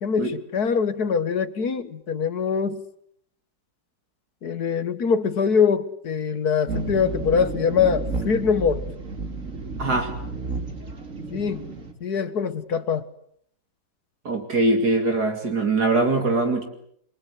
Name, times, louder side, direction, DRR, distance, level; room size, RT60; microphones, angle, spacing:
voice 1, 0.0-2.8 4.4-8.8 11.3-11.6 12.0-13.0, left 6 dB, 65° left, 1.9 m, -23 dB
sound 1, 6.7-11.9, right 3 dB, 45° right, 3.7 m, -32 dB
voice 2, 9.8-10.1 14.2-16.6, right 2 dB, 65° right, 3.3 m, -22 dB
29.0 x 24.0 x 8.2 m
omnidirectional pair, 1.8 m